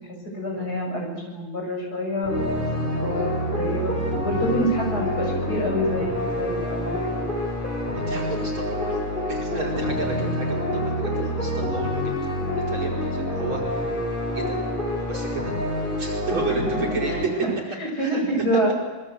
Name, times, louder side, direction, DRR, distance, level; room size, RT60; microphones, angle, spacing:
voice 1, 0.0-2.5 2.8-3.3 3.5-3.9 4.2-7.2 9.9-10.3 16.6-16.8 17.1-17.5 17.8-18.7, equal, 50° left, 0 dB, 8.1 m, -27 dB
sound 1, 2.2-17.2, left 1 dB, 25° left, 6.1 m, -27 dB
voice 2, 7.9-13.9 14.3-14.6 15.0-15.6 16.0-17.3 18.0-18.2, right 3 dB, 75° right, -2 dB, 6.0 m, -32 dB
26.0 x 22.5 x 8.2 m, 1.3 s
omnidirectional pair, 2.2 m